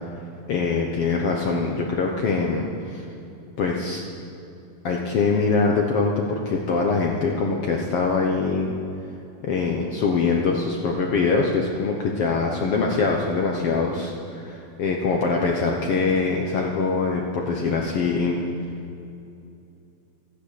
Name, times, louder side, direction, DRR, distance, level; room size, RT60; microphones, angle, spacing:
voice 1, 0.5-3.1 3.6-4.1 4.8-8.7 9.4-18.4, left 4 dB, 60° left, 0 dB, 1.7 m, -23 dB
15.0 x 9.6 x 8.3 m, 2.7 s
omnidirectional pair, 3.5 m